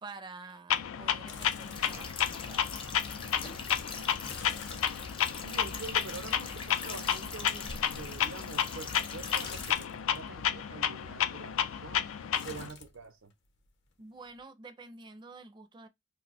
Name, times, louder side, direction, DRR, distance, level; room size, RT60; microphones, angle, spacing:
voice 1, 0.0-2.7 14.0-15.9, right 3 dB, 25° right, 0.4 m, -48 dB
Clock, 0.7-12.7, left 9 dB, 85° left, 0.4 m, -32 dB
sound 1, 1.3-2.2 2.5-2.6 4.2-5.5 6.7-7.8 9.4-10.2 12.3-13.0 13.3-13.9 14.3-14.4, left 5 dB, 60° left, 0.7 m, -48 dB
sound 2, 1.7-9.7, left 4 dB, 25° left, 0.5 m, -42 dB
voice 2, 5.4-12.1 12.4-13.3, right 4 dB, 85° right, 0.6 m, -45 dB
2.5 x 2.1 x 4.0 m
head